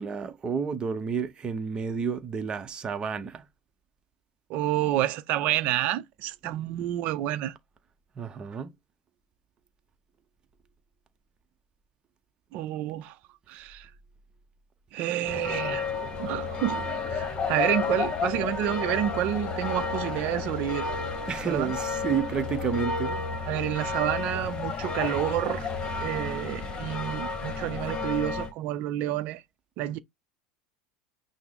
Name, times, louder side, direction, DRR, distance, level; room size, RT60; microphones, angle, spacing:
voice 1, 0.0-3.5 8.2-8.7 21.3-23.2, right 6 dB, 30° right, 0.8 m, -30 dB
voice 2, 4.5-7.6 12.5-13.2 13.5-13.9 14.9-15.9 16.2-20.9 21.4-21.7 23.5-25.7 26.0-29.4 29.8-30.0, right 13 dB, 55° right, 0.6 m, -29 dB
sound 1, 15.2-28.5, left 4 dB, 30° left, 1.1 m, -31 dB
5.8 x 2.1 x 3.5 m
supercardioid pair, 110°, 3 cm